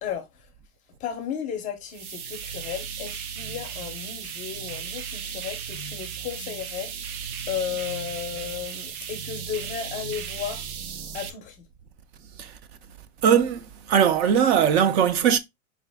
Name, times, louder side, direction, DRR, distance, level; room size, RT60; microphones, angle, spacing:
voice 1, 0.0-0.5 1.0-7.2 7.5-10.7 11.1-11.7, left 9 dB, 20° left, 0.5 m, -34 dB
sound 1, 1.9-11.3, right 7 dB, 85° right, 0.8 m, -35 dB
voice 2, 13.2-15.4, right 8 dB, 50° right, 0.5 m, -20 dB
4.9 x 2.5 x 3.3 m
supercardioid pair, 145°, 42 cm